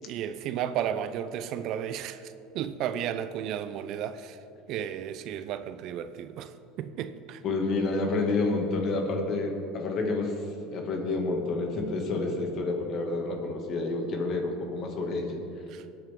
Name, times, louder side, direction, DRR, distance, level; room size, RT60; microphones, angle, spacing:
voice 1, 0.0-2.2 2.5-4.4 4.7-6.5 6.8-7.4 15.7-15.8, right 9 dB, 60° right, 0.6 m, -33 dB
voice 2, 7.4-10.4 10.7-15.4, left 3 dB, 50° left, 2.4 m, -29 dB
22.0 x 8.9 x 3.8 m
supercardioid pair, 110°, 0 cm